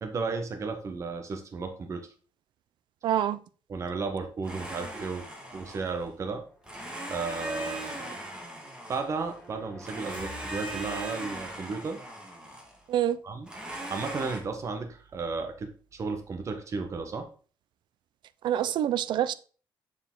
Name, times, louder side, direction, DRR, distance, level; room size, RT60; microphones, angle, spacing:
voice 1, 0.0-2.1 3.7-6.4 7.1-8.2 8.9-12.0 13.2-13.5 13.9-17.3, right 4 dB, 35° right, 1.3 m, -34 dB
voice 2, 3.0-3.4 12.9-13.2 18.4-19.3, right 11 dB, 70° right, 0.5 m, -26 dB
Domestic sounds home sounds, 4.4-6.1 6.6-9.4 9.8-12.8 13.5-14.4, right 1 dB, 10° right, 2.0 m, -39 dB
sound 1, 5.3-12.0, equal, 15° left, 2.3 m, -53 dB
6.9 x 6.9 x 3.9 m
cardioid pair, 145°, 8 cm